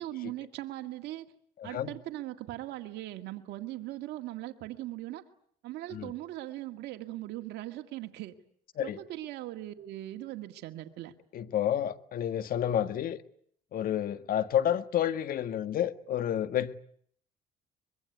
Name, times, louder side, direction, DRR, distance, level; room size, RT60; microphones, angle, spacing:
voice 1, 0.0-1.3 1.6-5.2 5.6-8.3 8.8-11.1, right 15 dB, 80° right, 2.0 m, -39 dB
voice 2, 1.6-1.9 5.9-6.1 8.8-9.0 11.3-13.2 13.7-16.8, left 10 dB, 60° left, 1.7 m, -30 dB
24.5 x 23.0 x 9.5 m
cardioid pair, 110°, 17 cm